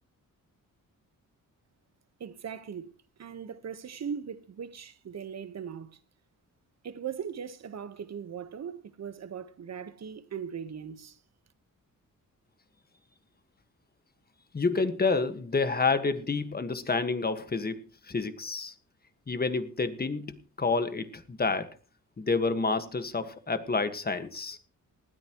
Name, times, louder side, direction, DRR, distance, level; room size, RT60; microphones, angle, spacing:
voice 1, 2.2-2.9 3.2-5.9 6.8-11.2, right 7 dB, 55° right, 1.3 m, -39 dB
voice 2, 14.5-18.7 19.3-21.7 22.2-24.6, left 4 dB, 30° left, 1.6 m, -29 dB
19.5 x 13.0 x 3.1 m
cardioid pair, 95°, 33 cm